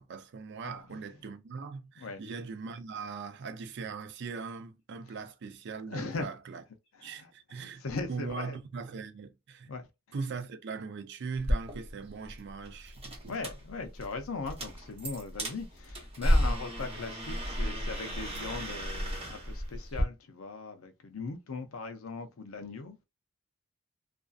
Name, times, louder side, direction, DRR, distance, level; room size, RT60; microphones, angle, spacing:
voice 1, 0.0-6.6 7.0-7.8 8.1-9.7 10.1-13.3, right 5 dB, 60° right, 0.4 m, -40 dB
voice 2, 0.6-1.0 2.0-2.2 5.9-6.3 6.9-8.6 9.7-9.9 13.3-23.0, left 3 dB, 85° left, 0.5 m, -39 dB
sound 1, 11.4-20.0, equal, 30° right, 0.8 m, -33 dB
2.5 x 2.3 x 2.3 m
head